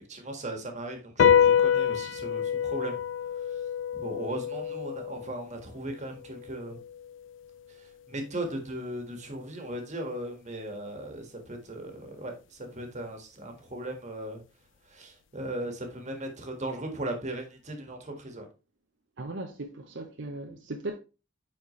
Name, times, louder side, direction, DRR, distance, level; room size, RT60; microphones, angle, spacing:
voice 1, 0.1-3.0 3.9-6.8 7.7-14.4 14.9-18.5, right 1 dB, 40° right, 1.7 m, -37 dB
sound 1, 1.2-7.9, left 8 dB, 80° left, 0.4 m, -27 dB
voice 2, 19.2-21.0, right 2 dB, 70° right, 0.9 m, -37 dB
9.6 x 4.4 x 3.2 m
head